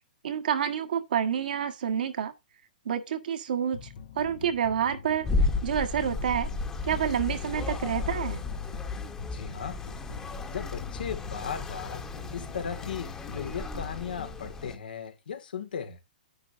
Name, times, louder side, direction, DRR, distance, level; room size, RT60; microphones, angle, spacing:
voice 1, 0.2-2.3 2.8-3.8 4.1-5.3 5.6-6.5 6.8-8.4, right 8 dB, 70° right, 1.5 m, -28 dB
sound 1, 3.7-14.7, left 6 dB, 60° left, 1.2 m, -44 dB
sound 2, 5.2-14.8, left 3 dB, 15° left, 1.2 m, -33 dB
voice 2, 9.3-9.8 10.5-12.1 12.3-16.0, left 7 dB, 80° left, 2.1 m, -37 dB
10.5 x 8.7 x 2.7 m
hypercardioid pair, 145°, 5 cm